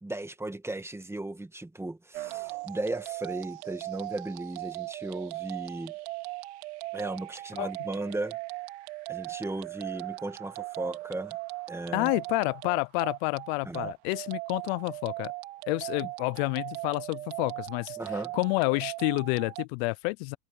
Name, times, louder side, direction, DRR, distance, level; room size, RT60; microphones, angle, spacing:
voice 1, 0.0-5.9 6.9-8.4 9.1-11.4 11.7-12.1 13.6-13.9 18.0-18.3, right 2 dB, 10° right, 2.1 m, -36 dB
sound 1, 2.1-19.6, right 21 dB, 80° right, 2.8 m, -39 dB
voice 2, 11.9-15.3 15.7-18.0 18.3-20.4, left 29 dB, 70° left, 0.6 m, -29 dB
supercardioid pair, 95°, 33 cm